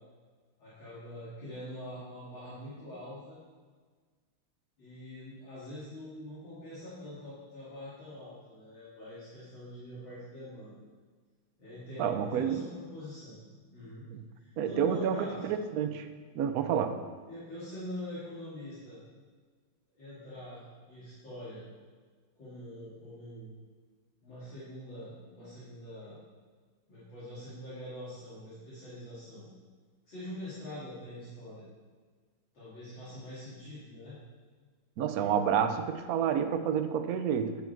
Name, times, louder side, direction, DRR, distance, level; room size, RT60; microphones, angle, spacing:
voice 1, 0.6-3.4 4.8-10.7 11.6-13.4 13.7-14.1 14.4-15.5 17.3-19.0 19.9-21.6 22.4-23.5 24.2-26.2 26.9-29.5 30.1-31.6 32.5-34.2, left 1 dB, 60° left, -12 dB, 3.4 m, -44 dB
voice 2, 12.0-12.6 14.1-14.2 14.6-15.2 15.4-16.1 16.3-17.0 35.0-37.6, right 8 dB, 75° right, 7 dB, 0.8 m, -29 dB
10.5 x 7.0 x 4.5 m, 1.5 s
omnidirectional pair, 2.4 m